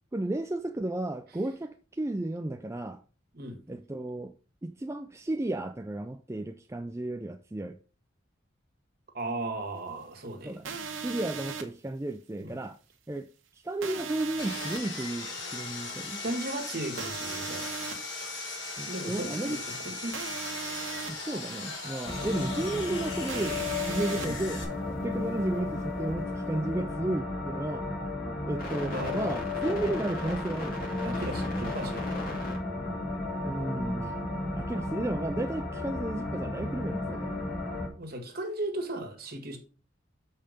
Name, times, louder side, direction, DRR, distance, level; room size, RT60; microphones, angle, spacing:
voice 1, 0.1-3.0 3.7-4.3 4.6-7.8 10.4-10.7 11.0-12.8 13.1-13.3 13.5-16.2 18.8-19.6 21.1-24.6 24.9-27.9 28.5-30.8 32.8-33.0 33.4-34.1 34.6-37.4, right 1 dB, 15° right, 0.4 m, -33 dB
voice 2, 9.1-10.5 12.4-12.6 16.2-17.7 18.9-20.2 24.1-24.4 28.9-29.4 31.0-32.2 38.0-39.6, right 1 dB, 50° right, 1.9 m, -36 dB
sound 1, 10.6-11.6 13.8-14.8 17.0-17.9 20.1-21.1 23.3-24.3, right 6 dB, 80° right, 1.1 m, -37 dB
Sawing, 14.4-24.6, left 3 dB, 70° left, 3.7 m, -38 dB
sound 2, 22.0-37.9, left 2 dB, 45° left, 2.5 m, -33 dB
6.8 x 5.5 x 5.1 m
head